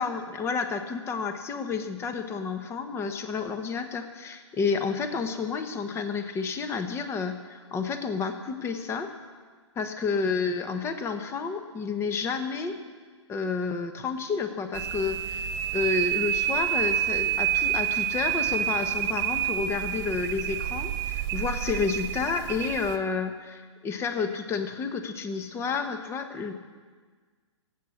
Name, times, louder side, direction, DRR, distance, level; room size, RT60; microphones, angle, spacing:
voice 1, 0.0-9.1 9.8-12.8 13.3-26.5, left 5 dB, 15° left, 8 dB, 1.2 m, -30 dB
sound 1, 14.7-23.0, right 11 dB, 35° right, 1.4 m, -28 dB
18.5 x 8.2 x 7.2 m, 1.5 s
hypercardioid pair, 130°, 15 cm